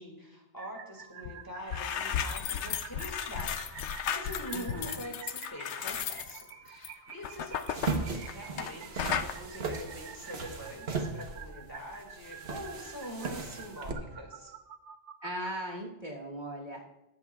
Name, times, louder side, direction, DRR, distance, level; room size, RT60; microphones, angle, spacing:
voice 1, 0.0-14.5, equal, 20° left, 0 dB, 2.0 m, -44 dB
sound 1, 0.6-15.5, right 8 dB, 80° right, 0.9 m, -49 dB
sound 2, 1.2-1.3 1.6-8.7 9.0-9.3, left 8 dB, 75° left, 0.9 m, -35 dB
voice 2, 4.5-5.0 15.2-16.8, equal, 45° right, -2 dB, 1.6 m, -38 dB
sound 3, 7.7-13.9, right 4 dB, 60° right, 1.3 m, -37 dB
21.5 x 7.8 x 2.3 m, 0.93 s
omnidirectional pair, 1.2 m